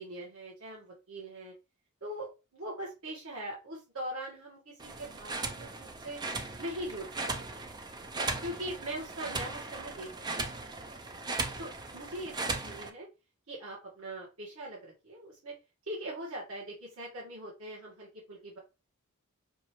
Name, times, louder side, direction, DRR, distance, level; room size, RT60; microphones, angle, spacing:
voice 1, 0.0-1.5 2.0-6.2 6.6-7.1 7.4-7.6 8.4-10.1 10.3-10.5 11.6-13.1 13.5-15.5 15.9-18.6, right 1 dB, 70° right, -5 dB, 1.6 m, -41 dB
sound 1, 4.8-12.9, right 3 dB, 20° right, 0.4 m, -37 dB
5.3 x 2.6 x 3.1 m, 0.28 s
head